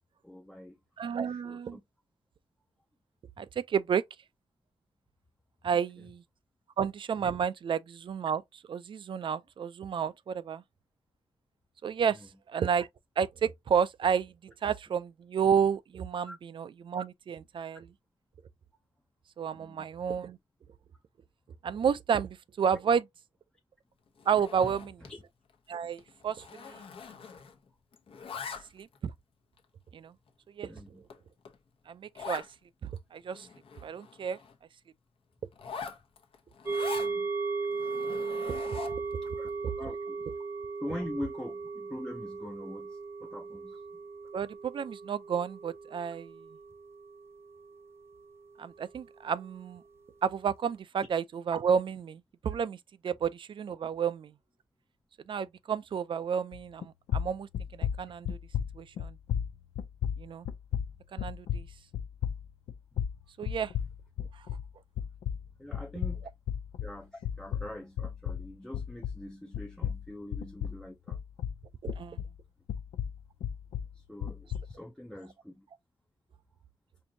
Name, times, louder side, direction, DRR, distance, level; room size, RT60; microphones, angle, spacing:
voice 1, 0.2-1.8 12.1-12.3 16.3-16.4 19.5-19.9 24.6-24.7 25.0-25.2 30.7-31.0 36.9-37.3 39.4-39.5 39.8-40.2 40.8-43.8 51.0-51.1 65.6-66.3 66.8-71.2 73.9-75.7, left 1 dB, 5° left, 0.5 m, -43 dB
voice 2, 1.0-1.8 3.4-4.0 5.6-6.2 6.8-10.6 11.8-12.2 12.5-12.9 13.2-17.9 19.4-20.4 21.6-23.1 24.3-25.0 25.7-26.8 28.7-29.1 29.9-30.1 30.6-30.7 31.9-32.4 32.8-33.5 33.8-34.4 38.5-38.9 39.6-39.7 44.3-46.5 48.6-49.8 50.2-52.8 53.0-54.3 55.3-58.4 58.7-59.2 60.2-60.5 61.1-61.7 63.4-63.7 71.8-72.2, right 7 dB, 55° right, 0.4 m, -31 dB
Zipper (clothing), 24.2-25.2 25.5-25.7 26.0-27.7 27.9-29.0 29.6-29.7 30.3-30.4 30.8-30.9 31.1-31.2 31.4-31.6 32.1-32.5 33.0-33.1 33.3-34.6 35.5-37.1 37.7-39.1, left 6 dB, 65° left, 0.9 m, -43 dB
sound 1, 36.7-48.3 48.7-48.8, right 4 dB, 25° right, 0.7 m, -37 dB
sound 2, 56.5-56.8 57.1-64.7 65.0-69.3 69.5-72.4 72.7-74.7, left 9 dB, 90° left, 0.4 m, -34 dB
4.4 x 2.6 x 2.6 m
cardioid pair, 100°, 10 cm